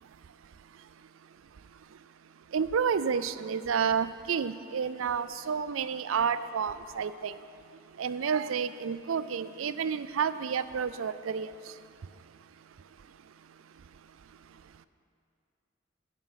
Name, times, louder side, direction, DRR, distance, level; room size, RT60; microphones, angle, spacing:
voice 1, 2.5-7.3 8.0-11.5, right 6 dB, 85° right, 14 dB, 0.4 m, -30 dB
11.0 x 6.4 x 8.0 m, 2.4 s
head